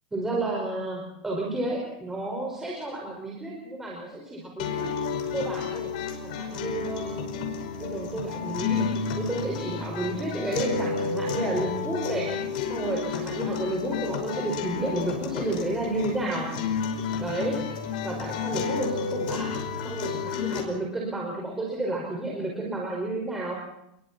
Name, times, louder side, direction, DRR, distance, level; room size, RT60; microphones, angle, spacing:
voice 1, 0.1-4.9 5.3-5.9 6.2-7.3 7.8-8.9 9.2-12.4 12.6-16.5 17.2-17.6 18.0-19.5 19.8-23.5, right 2 dB, 10° right, -2 dB, 5.0 m, -31 dB
sound 1, 4.6-20.6, left 6 dB, 70° left, 5.3 m, -31 dB
28.0 x 22.5 x 4.2 m, 0.78 s
supercardioid pair, 155°, 5 cm